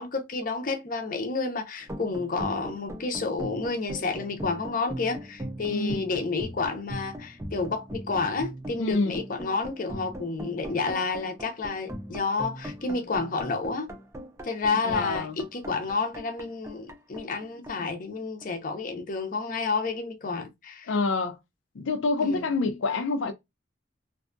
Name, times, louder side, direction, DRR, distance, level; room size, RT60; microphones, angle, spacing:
voice 1, 0.0-13.9 14.4-20.9 22.2-22.5, left 4 dB, 45° left, 0.6 m, -30 dB
sound 1, 1.8-18.7, equal, 15° right, 0.4 m, -40 dB
voice 2, 5.7-6.0 8.8-9.2 12.1-12.2 14.8-15.4 17.8-17.9 20.9-21.4 21.8-23.3, left 3 dB, 90° left, 0.4 m, -27 dB
2.6 x 2.3 x 2.5 m
head